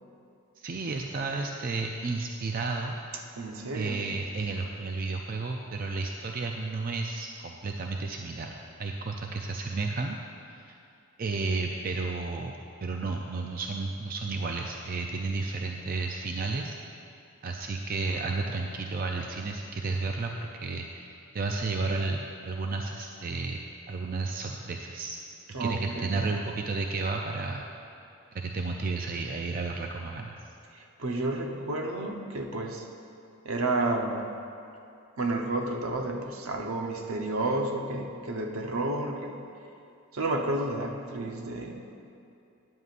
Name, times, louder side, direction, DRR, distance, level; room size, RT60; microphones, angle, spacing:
voice 1, 0.6-3.0 3.7-8.5 8.8-10.2 10.5-10.8 11.2-16.8 17.4-25.2 25.6-27.7 28.3-30.3, right 3 dB, 40° right, 2 dB, 0.4 m, -32 dB
voice 2, 3.4-4.0 25.5-26.2 30.7-32.9 33.4-34.3 35.2-39.4 40.1-41.8, right 2 dB, 75° right, 2 dB, 0.9 m, -31 dB
13.0 x 9.5 x 2.5 m, 2.6 s
head